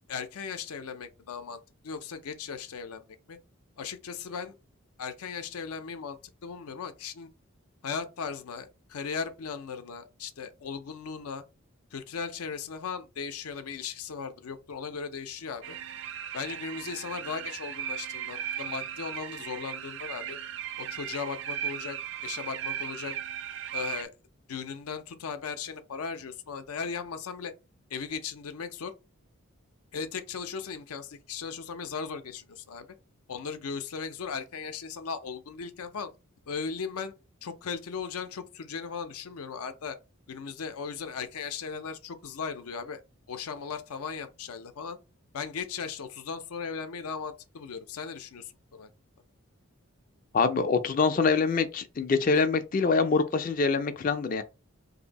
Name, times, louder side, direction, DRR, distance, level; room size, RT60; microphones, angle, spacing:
voice 1, 0.1-3.4 3.8-4.5 5.0-7.3 7.8-11.4 11.9-15.8 16.3-20.4 20.8-22.0 22.2-23.2 23.7-24.1 24.5-27.5 27.9-28.9 29.9-32.9 33.3-36.1 36.5-37.1 37.4-40.0 40.3-43.0 43.3-45.0 45.3-48.9, left 5 dB, 85° left, 0.5 m, -37 dB
sound 1, 15.6-24.0, right 9 dB, 55° right, 0.3 m, -37 dB
voice 2, 50.3-54.4, left 4 dB, 40° left, 0.4 m, -25 dB
2.7 x 2.6 x 4.0 m
head